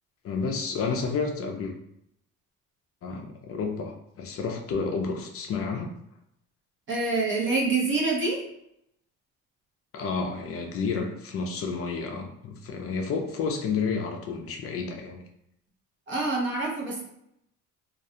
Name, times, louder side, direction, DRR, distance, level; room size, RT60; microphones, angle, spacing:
voice 1, 0.2-1.7 3.0-5.9 9.9-15.2, left 5 dB, 45° left, 3 dB, 0.4 m, -30 dB
voice 2, 6.9-8.4 16.1-17.0, right 3 dB, 40° right, -1 dB, 0.7 m, -26 dB
2.4 x 2.1 x 2.7 m, 0.77 s
cardioid pair, 120°, 32 cm